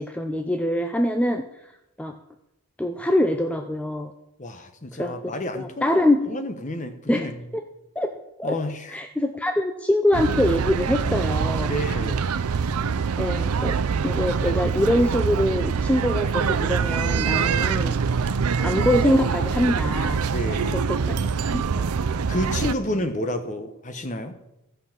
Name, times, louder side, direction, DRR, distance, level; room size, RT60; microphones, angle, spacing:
voice 1, 0.0-1.4 2.0-2.1 2.8-4.1 5.0-6.2 7.1-7.6 8.0-8.1 8.4-8.6 8.9-11.7 13.2-13.8 14.0-18.3 18.6-20.2 20.7-21.3 21.5-21.9, left 1 dB, 5° left, 6 dB, 0.4 m, -24 dB
voice 2, 4.4-6.0 6.2-7.3 8.4-8.9 11.6-12.3 20.3-20.8 22.3-24.4, left 1 dB, 35° left, 8 dB, 1.0 m, -30 dB
sound 1, 10.1-22.7, right 5 dB, 85° right, 0.5 m, -24 dB
14.0 x 5.6 x 7.3 m, 0.91 s
head